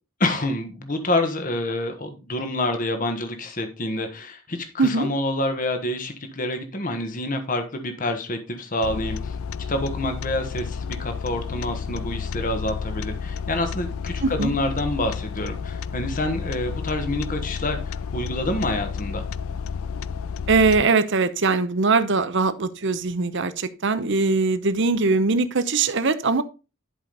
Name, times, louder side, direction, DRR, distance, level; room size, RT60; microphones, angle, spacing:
voice 1, 0.2-9.4 9.7-19.3, left 1 dB, 40° left, 1.3 m, -27 dB
voice 2, 4.8-5.1 14.2-14.5 20.5-26.4, right 4 dB, 60° right, 0.8 m, -21 dB
sound 1, 8.8-20.8, left 6 dB, 75° left, 0.4 m, -31 dB
11.0 x 5.1 x 4.0 m
head